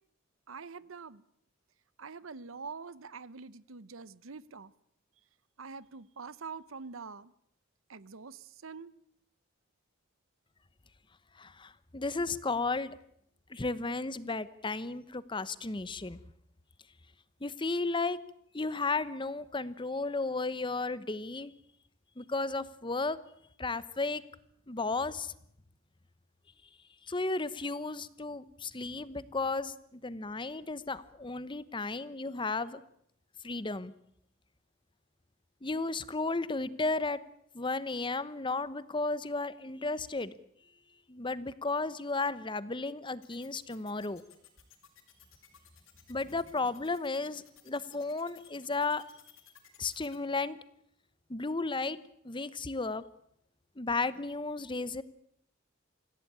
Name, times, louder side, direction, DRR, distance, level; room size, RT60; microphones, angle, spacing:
voice 1, 0.5-1.2 2.0-4.7 5.6-7.3 7.9-8.9, right 5 dB, 90° right, 0.9 m, -45 dB
voice 2, 11.4-13.0 13.5-16.2 17.4-18.2 18.5-21.5 22.2-23.2 23.6-24.2 24.7-25.3 27.1-32.8 33.4-33.9 35.6-37.2 37.5-40.4 41.1-44.2 46.1-49.0 49.8-50.6 51.3-52.0 52.2-53.0 53.8-55.0, left 3 dB, 25° left, 0.9 m, -34 dB
sound 1, 43.2-50.2, left 10 dB, 85° left, 5.5 m, -58 dB
26.5 x 16.5 x 8.7 m
head